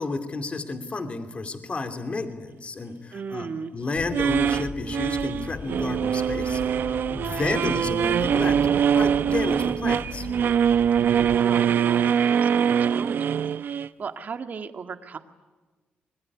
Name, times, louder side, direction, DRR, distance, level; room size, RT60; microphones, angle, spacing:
voice 1, 0.0-6.8 7.1-10.3, left 3 dB, 35° left, 7 dB, 2.7 m, -31 dB
voice 2, 3.1-3.7 7.1-7.6 11.0-13.3 13.6-15.2, right 5 dB, 50° right, 7 dB, 1.9 m, -36 dB
sound 1, 3.9-11.4, left 5 dB, 50° left, 2.0 m, -39 dB
sound 2, 4.1-13.9, right 8 dB, 65° right, 0.8 m, -23 dB
26.5 x 21.5 x 9.8 m, 1.2 s
cardioid pair, 105°, 4 cm